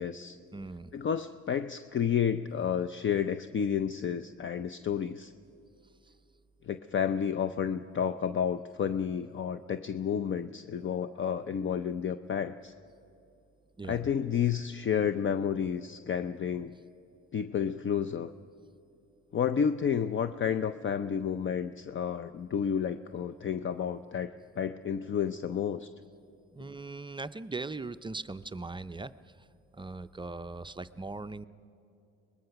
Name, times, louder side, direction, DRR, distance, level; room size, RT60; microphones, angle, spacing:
voice 1, 0.0-0.4 0.9-5.3 6.6-12.7 13.8-16.7 17.3-18.3 19.3-25.9, left 8 dB, 40° left, 11 dB, 0.5 m, -31 dB
voice 2, 0.5-0.9 13.8-14.1 26.5-29.1 29.7-31.5, right 3 dB, 15° right, 11 dB, 0.4 m, -39 dB
23.5 x 20.5 x 5.8 m, 2.6 s
cardioid pair, 90°, 30 cm